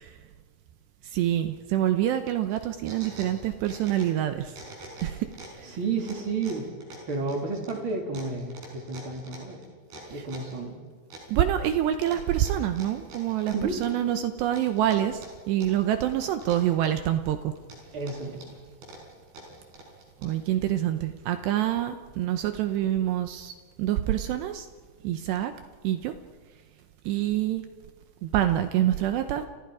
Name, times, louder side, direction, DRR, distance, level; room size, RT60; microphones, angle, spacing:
voice 1, 1.1-4.4 5.0-5.1 11.3-13.5 13.8-15.2 15.5-17.4 20.2-23.5 23.8-24.6 25.0-25.5 25.8-26.1 27.1-27.6 28.2-29.4, right 12 dB, 80° right, 8 dB, 2.5 m, -26 dB
sound 1, 2.5-4.2 4.5-5.6 6.0-10.6 11.1-11.7 12.0-14.1 14.5-15.8 16.1-17.1 17.6-20.5, right 2 dB, 50° right, 7.2 m, -45 dB
voice 2, 5.6-6.7 7.1-9.7 10.1-10.8 13.5-13.8 17.9-18.6, right 4 dB, 30° right, 1 dB, 2.8 m, -31 dB
30.0 x 29.0 x 4.9 m, 1.5 s
omnidirectional pair, 6.0 m